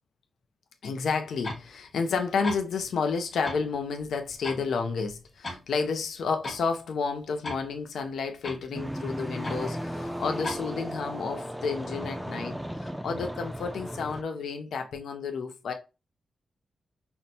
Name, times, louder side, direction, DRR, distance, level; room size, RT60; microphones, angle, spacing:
voice 1, 0.8-15.7, left 5 dB, 85° left, 0.5 m, -31 dB
sound 1, 1.4-1.7 2.1-2.2 2.4-2.6 3.4-3.7 4.0-4.7 5.0-5.6 6.0-6.1 6.4-6.6 7.4-7.7 8.4-8.7 9.4-9.6 10.4-10.6, left 2 dB, 40° left, 1.3 m, -36 dB
sound 2, 8.7-14.2, equal, 5° right, 0.4 m, -35 dB
5.6 x 2.1 x 2.6 m
wide cardioid pair, 105°, 0 cm